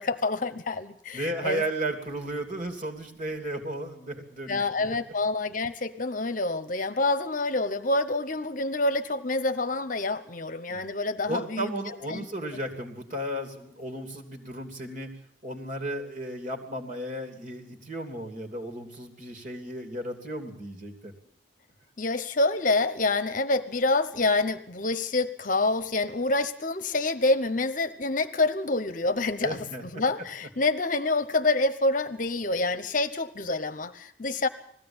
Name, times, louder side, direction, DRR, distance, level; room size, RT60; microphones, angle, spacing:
voice 1, 0.0-1.6 4.5-11.7 12.1-12.2 22.0-34.5, left 2 dB, 45° left, 11 dB, 1.0 m, -27 dB
voice 2, 1.1-5.0 10.7-10.8 11.2-15.1 15.4-21.1 29.4-29.8, right 1 dB, 45° right, 5 dB, 3.1 m, -34 dB
20.5 x 15.5 x 8.9 m, 0.69 s
head